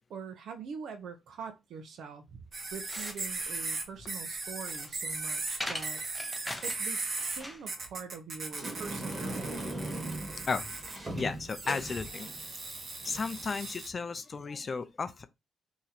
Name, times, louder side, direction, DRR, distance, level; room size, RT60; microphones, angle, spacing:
voice 1, 0.1-2.5 2.7-6.0 6.6-9.7, right 5 dB, 70° right, 0.8 m, -44 dB
sound 1, 2.5-7.7, left 1 dB, 5° left, 0.7 m, -42 dB
sound 2, 2.5-7.4 7.7-11.0 11.5-13.9, right 3 dB, 45° right, 1.1 m, -38 dB
Sliding door, 8.5-13.7, right 1 dB, 20° right, 1.4 m, -39 dB
voice 2, 11.1-12.3 13.0-15.3, left 4 dB, 35° left, 0.4 m, -34 dB
3.0 x 2.6 x 4.0 m
cardioid pair, 90°, 0 cm